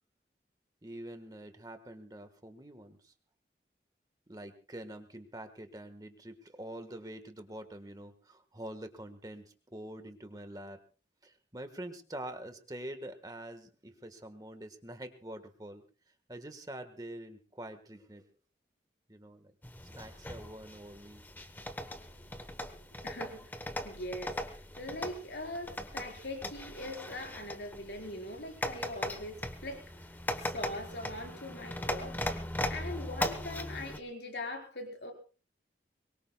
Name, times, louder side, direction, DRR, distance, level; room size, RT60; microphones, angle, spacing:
voice 1, 0.8-3.1 4.3-10.8 11.2-15.8 16.3-18.3 19.1-19.5 19.9-21.2, right 1 dB, 20° right, 8 dB, 1.4 m, -45 dB
sound 1, 19.6-34.0, left 1 dB, 10° left, 1.0 m, -39 dB
voice 2, 23.0-32.3 32.7-35.1, left 1 dB, 80° left, 2 dB, 4.5 m, -42 dB
23.5 x 22.0 x 2.3 m, 0.36 s
head